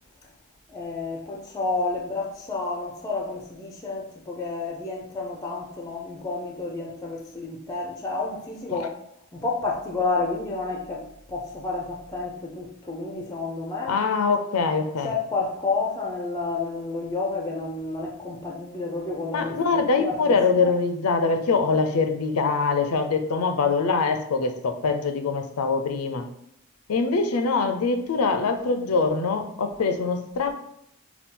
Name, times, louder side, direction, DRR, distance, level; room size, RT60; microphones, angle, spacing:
voice 1, 0.7-8.9 9.3-14.0 15.0-20.3 20.6-20.7, left 3 dB, 15° left, 0.4 m, -30 dB
voice 2, 13.9-15.1 19.3-26.3 26.9-30.5, left 4 dB, 85° left, 0.5 m, -23 dB
4.2 x 2.3 x 3.7 m
head